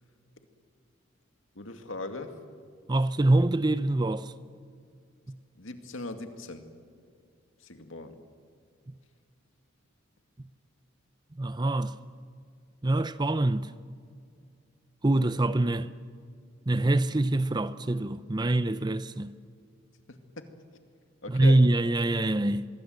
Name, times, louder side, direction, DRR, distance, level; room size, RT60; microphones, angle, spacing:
voice 1, 1.6-2.3 5.6-6.6 7.6-8.1 20.4-20.5 21.2-21.6, left 2 dB, 70° left, 2.3 m, -39 dB
voice 2, 2.9-4.3 5.3-5.4 11.4-12.0 12.8-13.7 15.0-15.9 16.7-19.3 21.3-22.7, right 2 dB, 20° right, 0.6 m, -25 dB
25.0 x 22.5 x 7.9 m
head